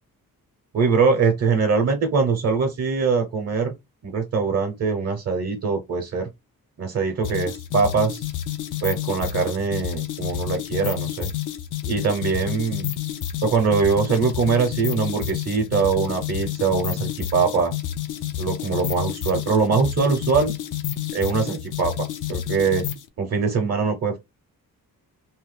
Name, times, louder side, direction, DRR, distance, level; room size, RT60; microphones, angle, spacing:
voice 1, 0.7-3.7 4.0-6.3 6.8-8.2 8.8-11.3 11.8-12.9 13.4-17.7 18.4-20.5 21.1-22.8 23.2-24.2, right 5 dB, 45° right, 0.7 m, -22 dB
sound 1, 7.2-23.1, left 12 dB, 60° left, 0.5 m, -30 dB
2.8 x 2.2 x 3.2 m
wide cardioid pair, 160°, 35 cm